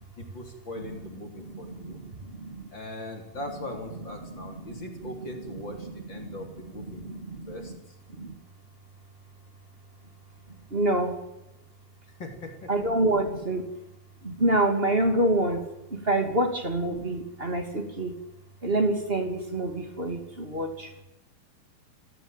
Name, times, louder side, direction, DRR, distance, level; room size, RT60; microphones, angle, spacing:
voice 1, 0.2-2.0 2.7-7.1 7.5-8.0 12.2-12.7, left 1 dB, 30° left, 4 dB, 3.6 m, -40 dB
voice 2, 1.4-2.7 4.5-4.6 5.0-5.1 6.2-6.4 6.9-7.8 8.1-8.3 10.7-11.2 12.7-13.7 14.2-15.6 15.9-18.2 18.6-20.9, right 1 dB, 20° right, 6 dB, 1.9 m, -27 dB
27.5 x 16.0 x 9.2 m, 0.94 s
omnidirectional pair, 4.9 m